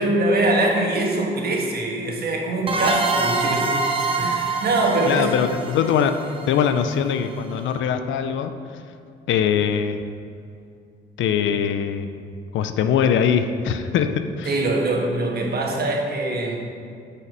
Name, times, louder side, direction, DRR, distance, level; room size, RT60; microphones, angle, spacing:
voice 1, 0.0-3.9 4.2-5.3 14.5-16.6, right 2 dB, 50° right, 0 dB, 1.4 m, -23 dB
sound 1, 2.7-7.2, right 3 dB, 25° right, 0.8 m, -25 dB
voice 2, 5.1-6.2 6.5-8.5 9.3-10.0 11.2-12.2 12.5-14.5, left 7 dB, 75° left, 9 dB, 0.5 m, -22 dB
6.3 x 5.7 x 5.2 m, 2.4 s
cardioid pair, 90°, 20 cm